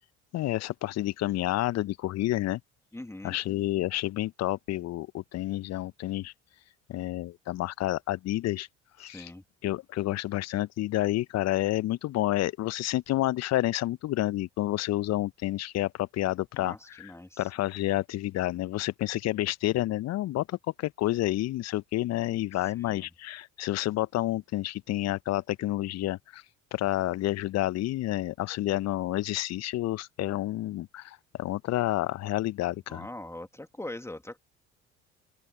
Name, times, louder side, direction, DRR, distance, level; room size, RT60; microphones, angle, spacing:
voice 1, 0.3-2.6 3.2-6.3 6.9-8.7 9.0-9.3 9.6-17.1 17.4-26.4 26.7-33.1, left 15 dB, 45° left, 1.1 m, -29 dB
voice 2, 2.9-3.4 9.0-9.4 16.5-17.5 22.6-23.1 32.9-34.4, left 1 dB, 10° left, 2.7 m, -42 dB
open air
figure-of-eight pair, 60°, 35 cm